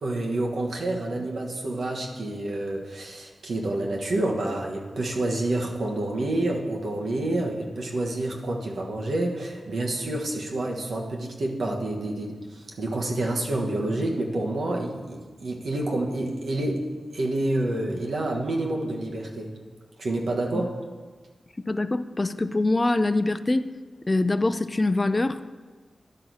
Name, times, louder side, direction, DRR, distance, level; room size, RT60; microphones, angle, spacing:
voice 1, 0.0-16.9 17.1-19.5 20.0-20.7, right 2 dB, 75° right, 0 dB, 1.2 m, -28 dB
voice 2, 21.7-23.7 24.1-25.4, left 2 dB, 35° left, 12 dB, 0.4 m, -24 dB
11.0 x 3.9 x 6.2 m, 1.4 s
cardioid pair, 45°, 0 cm